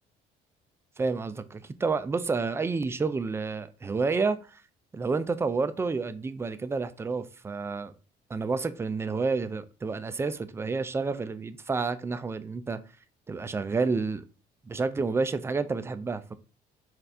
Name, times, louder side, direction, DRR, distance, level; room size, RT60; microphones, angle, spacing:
voice 1, 1.0-4.6 4.9-7.9 8.3-12.8 13.3-14.2 14.7-16.3, right 4 dB, 15° right, 0.3 m, -29 dB
4.1 x 2.4 x 3.3 m
cardioid pair, 110°, 17 cm